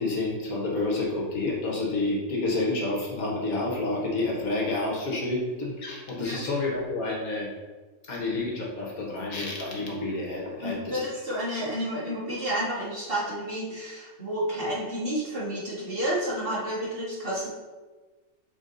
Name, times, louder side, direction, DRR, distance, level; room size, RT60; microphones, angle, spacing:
voice 1, 0.0-7.5 8.1-11.0, left 2 dB, 70° left, -3 dB, 1.7 m, -29 dB
voice 2, 10.6-17.5, equal, 40° right, -7 dB, 2.0 m, -30 dB
7.1 x 3.8 x 3.9 m, 1.3 s
omnidirectional pair, 1.6 m